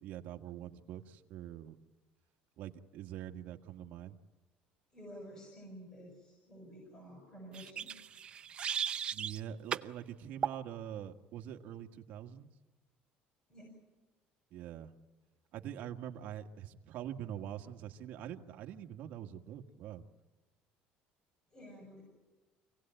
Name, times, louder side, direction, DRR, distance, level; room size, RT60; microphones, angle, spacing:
voice 1, 0.0-1.8 2.6-4.2 9.1-12.5 14.5-14.9 15.5-20.0, right 10 dB, 55° right, 4 dB, 1.7 m, -44 dB
voice 2, 4.9-7.9 13.5-13.8 21.5-22.0, equal, 20° left, 0 dB, 6.7 m, -51 dB
sound 1, 7.5-9.4 9.7-9.9 10.4-10.6, right 8 dB, 30° right, 0.7 m, -36 dB
26.5 x 17.5 x 9.0 m, 1.2 s
cardioid pair, 160°, 3 cm